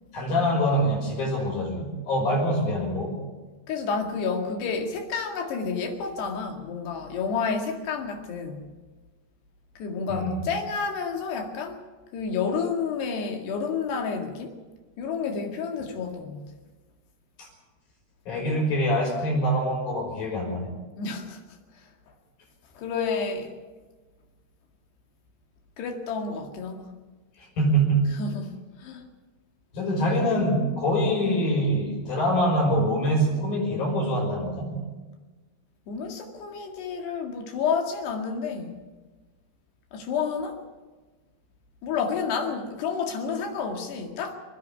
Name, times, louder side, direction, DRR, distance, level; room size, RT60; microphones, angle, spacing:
voice 1, 0.1-3.2 10.1-10.4 17.4-17.5 18.3-20.7 27.6-28.2 29.7-34.8, equal, 55° left, -1 dB, 7.2 m, -24 dB
voice 2, 3.7-8.7 9.8-11.8 12.1-14.6 15.0-16.5 21.0-21.4 21.7-21.9 22.8-23.5 25.8-26.9 28.1-29.0 35.9-38.8 39.9-40.6 41.8-44.3, left 5 dB, 70° left, 3 dB, 4.1 m, -30 dB
26.5 x 10.5 x 9.9 m, 1.3 s
omnidirectional pair, 5.1 m